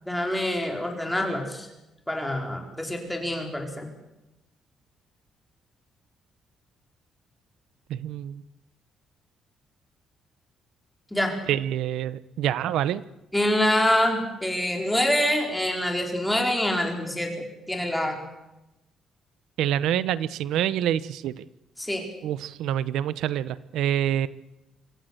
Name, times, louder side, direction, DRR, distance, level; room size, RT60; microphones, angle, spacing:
voice 1, 0.1-1.7 2.1-3.9 11.1-11.4 13.3-18.3 21.8-22.1, left 1 dB, 5° left, 2 dB, 4.5 m, -26 dB
voice 2, 7.9-8.4 11.5-13.0 19.6-21.3 22.2-24.3, right 11 dB, 90° right, 17 dB, 0.9 m, -26 dB
25.0 x 16.0 x 8.0 m, 0.96 s
cardioid pair, 130°, 0 cm